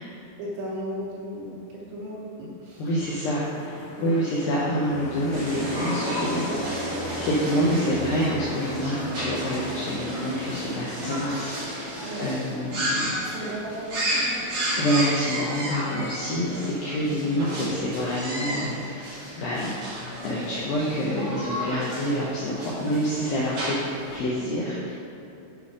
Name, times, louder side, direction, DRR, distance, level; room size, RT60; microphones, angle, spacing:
voice 1, 0.4-2.9 4.0-4.2 6.4-6.6 12.0-12.3 13.2-14.6 17.0-17.2, equal, 80° right, -4 dB, 3.2 m, -36 dB
voice 2, 2.8-13.1 13.4-13.5 14.8-19.7 20.2-23.8 24.1-24.9, equal, 85° left, -5 dB, 2.0 m, -27 dB
sound 1, 3.4-15.5, equal, 65° left, 2.4 m, -35 dB
sound 2, 5.3-24.2, right 1 dB, 50° right, 1.7 m, -33 dB
8.6 x 5.1 x 4.9 m, 2.7 s
omnidirectional pair, 5.3 m